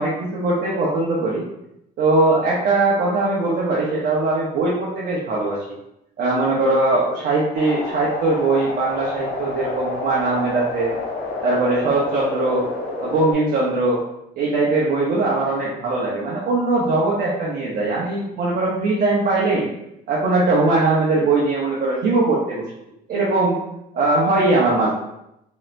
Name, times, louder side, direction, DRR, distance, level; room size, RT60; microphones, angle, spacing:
voice 1, 0.0-1.4 2.0-5.6 6.2-11.0 11.4-12.6 13.0-14.0 14.4-19.7 20.1-22.6 23.1-23.6 23.9-24.9, right 2 dB, 60° right, -6 dB, 1.0 m, -20 dB
sound 1, 7.5-13.3, left 2 dB, 70° left, 1.1 m, -29 dB
4.0 x 3.9 x 2.5 m, 0.83 s
cardioid pair, 110°, 17 cm